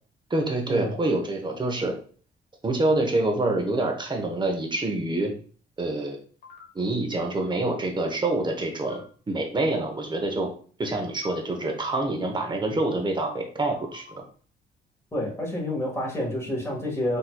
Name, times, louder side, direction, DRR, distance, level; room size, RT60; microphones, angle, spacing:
voice 1, 0.3-1.9 2.6-5.3 5.8-6.2 6.7-9.0 9.3-10.5 10.8-14.2, right 2 dB, 25° right, 3 dB, 1.0 m, -26 dB
sound 1, 6.4-6.7 8.8-9.0 11.2-11.4 13.6-14.2, left 7 dB, 55° left, 1.3 m, -44 dB
voice 2, 15.1-17.2, left 1 dB, 15° left, -4 dB, 1.7 m, -29 dB
4.2 x 3.0 x 2.3 m, 0.43 s
cardioid pair, 90°, 20 cm